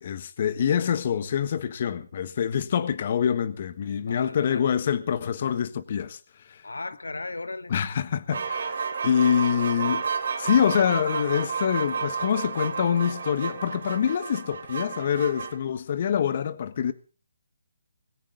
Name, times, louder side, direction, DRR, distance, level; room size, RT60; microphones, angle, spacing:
voice 1, 0.0-6.2 6.5-6.6 7.7-8.8 9.0-10.0 10.4-16.9, left 8 dB, 45° left, 1.4 m, -25 dB
voice 2, 4.1-4.7 6.6-7.7, left 3 dB, 90° left, 1.0 m, -36 dB
sound 1, 8.3-15.6, right 6 dB, 60° right, 2.9 m, -31 dB
19.5 x 17.0 x 3.9 m
hypercardioid pair, 155°, 0 cm